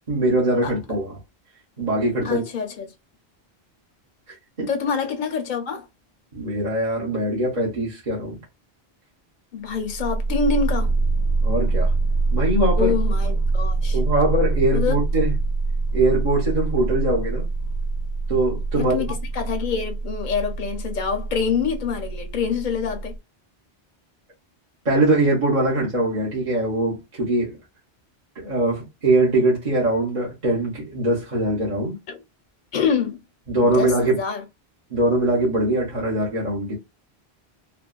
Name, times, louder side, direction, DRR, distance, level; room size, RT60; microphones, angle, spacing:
voice 1, 0.1-1.1 1.8-2.4 4.6-4.7 6.3-8.4 11.4-11.9 12.3-12.9 13.9-15.3 15.9-17.5 18.3-19.0 24.8-27.6 28.3-32.0 33.5-34.2 34.9-36.8, right 1 dB, 40° right, 1.2 m, -22 dB
voice 2, 2.2-2.9 4.7-5.9 9.5-10.9 12.8-14.0 14.7-15.0 18.7-23.2 32.1-32.2 32.7-33.2 33.6-34.4, left 6 dB, 50° left, 0.9 m, -26 dB
sound 1, 9.7-23.2, right 3 dB, 80° left, 0.8 m, -24 dB
3.2 x 2.1 x 2.3 m
omnidirectional pair, 1.1 m